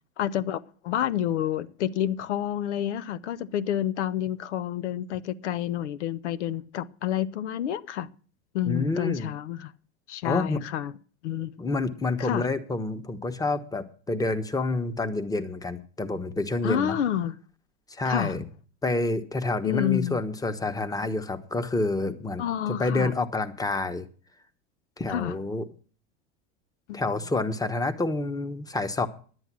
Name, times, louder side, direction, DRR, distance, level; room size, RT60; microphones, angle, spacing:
voice 1, 0.2-8.1 8.5-9.7 10.1-10.9 11.2-11.5 12.2-12.4 16.6-17.4 18.0-18.4 19.6-20.2 22.4-23.1 25.1-25.4 26.9-27.1, left 10 dB, 90° left, 0.7 m, -29 dB
voice 2, 8.7-9.3 10.2-10.6 11.6-17.0 17.9-18.5 18.8-22.4 22.8-24.1 25.0-25.7 26.9-29.1, left 2 dB, 10° left, 1.1 m, -28 dB
10.5 x 9.8 x 6.1 m
supercardioid pair, 105°, 34 cm